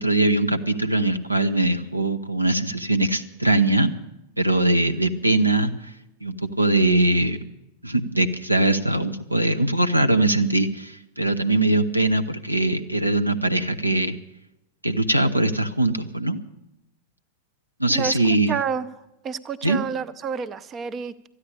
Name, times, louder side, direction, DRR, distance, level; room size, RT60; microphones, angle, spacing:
voice 1, 0.0-3.9 4.4-5.7 6.2-7.4 7.8-14.2 14.8-16.4 17.8-18.5 19.6-19.8, right 2 dB, 90° right, 6 dB, 0.8 m, -21 dB
voice 2, 18.5-18.9 19.2-21.3, right 6 dB, 25° right, 16 dB, 0.6 m, -29 dB
13.5 x 9.7 x 9.8 m, 0.92 s
figure-of-eight pair, 90°, 0 cm